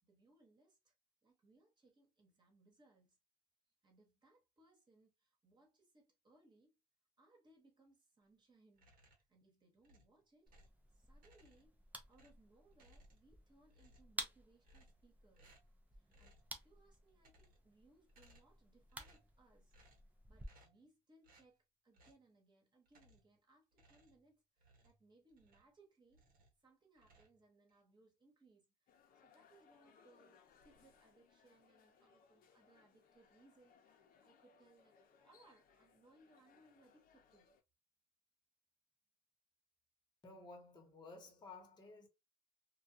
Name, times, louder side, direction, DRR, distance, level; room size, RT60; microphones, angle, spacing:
voice 1, 0.0-0.9 1.2-3.2 3.8-6.7 7.2-10.6 10.9-11.8 12.1-15.5 15.9-19.8 20.3-26.2 26.6-37.5, right 2 dB, 25° right, 1.2 m, -70 dB
sound 1, 8.7-9.4 9.8-10.8 11.2-11.8 12.1-13.4 13.7-14.2 14.6-15.1 15.3-15.8 16.1-16.5 17.1-17.7 18.1-18.6 18.9-19.4 19.7-20.1 20.4-20.9 21.2-21.5 21.9-22.3 22.9-23.4 23.7-25.8 26.1-26.6 26.9-27.8, right 1 dB, 55° right, 1.1 m, -68 dB
sound 2, 10.5-20.5, right 1 dB, 10° right, 0.5 m, -54 dB
sound 3, 28.9-37.6, left 6 dB, 60° left, 0.7 m, -69 dB
voice 2, 40.2-42.1, left 3 dB, 25° left, 1.0 m, -55 dB
2.3 x 2.3 x 2.6 m
cardioid pair, 110°, 17 cm